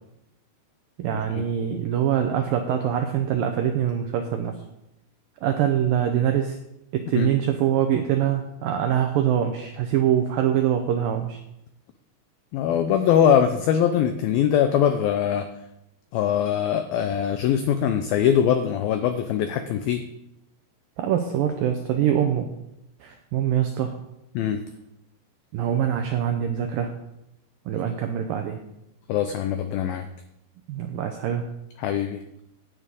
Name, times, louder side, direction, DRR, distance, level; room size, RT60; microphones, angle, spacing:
voice 1, 1.0-4.6 5.4-6.6 6.9-11.4 21.0-22.5 23.0-24.0 25.5-26.9 27.7-28.6 30.7-31.5, right 9 dB, 90° right, 5 dB, 1.9 m, -24 dB
voice 2, 12.5-15.5 16.1-20.0 24.4-24.6 29.1-30.1 31.8-32.2, left 9 dB, 90° left, 8 dB, 2.1 m, -22 dB
11.0 x 6.3 x 8.4 m, 0.85 s
omnidirectional pair, 5.1 m